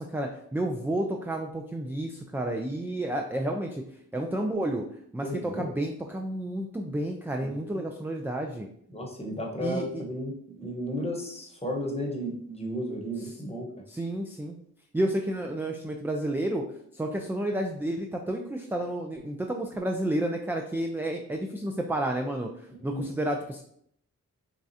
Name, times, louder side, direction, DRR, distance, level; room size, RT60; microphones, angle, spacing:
voice 1, 0.0-3.8 4.1-4.9 5.1-8.7 9.6-10.0 13.9-14.6 14.9-16.6 16.9-22.5 22.8-23.6, right 1 dB, 5° right, 2 dB, 0.3 m, -30 dB
voice 2, 5.2-5.7 7.4-7.9 8.9-13.7 22.8-23.0, equal, 20° left, 0 dB, 1.0 m, -34 dB
4.1 x 2.4 x 2.7 m, 0.68 s
cardioid pair, 45°, 34 cm